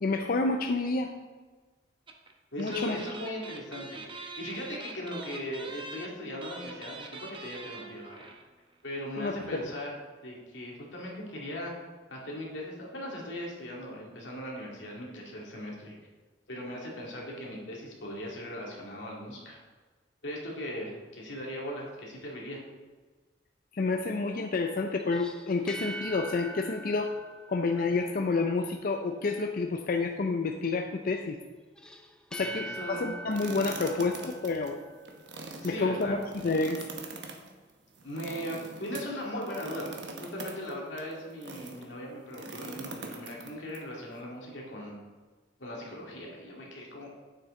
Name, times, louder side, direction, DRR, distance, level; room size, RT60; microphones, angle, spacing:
voice 1, 0.0-1.1 2.6-3.0 9.2-9.7 23.7-27.1 27.5-31.4 32.3-34.8 35.6-36.8, left 3 dB, 50° left, 4 dB, 0.5 m, -29 dB
sound 1, 2.1-2.3 2.6-8.5 8.7-8.8 9.0-9.2, right 3 dB, 30° right, 0.9 m, -44 dB
voice 2, 2.5-8.3 8.8-9.9 10.2-11.7 12.1-15.9 16.5-19.6 20.2-22.6 32.4-33.1 35.6-36.2 38.0-45.0 45.6-47.1, left 1 dB, 85° left, -3 dB, 2.3 m, -39 dB
sound 2, 25.0-28.5 31.8-35.3, right 1 dB, 5° left, 0.6 m, -43 dB
sound 3, 33.3-41.9 42.3-43.8, right 3 dB, 70° right, 1.1 m, -43 dB
9.2 x 7.6 x 3.7 m, 1.3 s
head